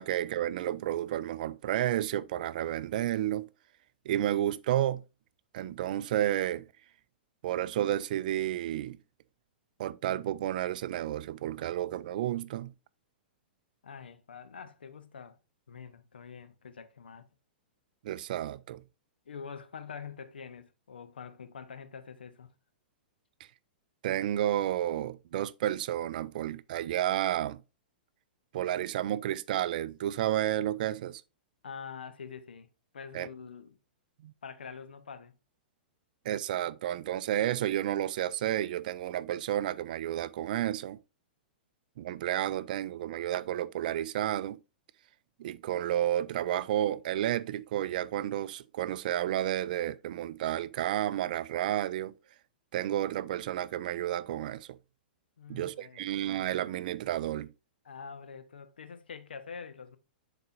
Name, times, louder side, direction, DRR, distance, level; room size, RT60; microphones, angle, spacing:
voice 1, 0.0-3.5 4.1-5.0 5.5-6.7 7.4-9.0 9.8-12.7 18.0-18.8 24.0-27.6 28.5-31.2 33.1-33.3 34.2-34.3 36.2-41.0 42.0-44.6 45.4-52.1 52.7-54.8 55.5-57.5, right 12 dB, 55° right, 0.4 m, -31 dB
voice 2, 13.8-15.4 15.7-17.3 19.3-22.5 31.6-32.7 32.9-33.8 34.4-35.4 55.4-56.1 57.8-60.0, left 6 dB, 75° left, 0.8 m, -45 dB
10.0 x 4.1 x 2.6 m
hypercardioid pair, 110°, 5 cm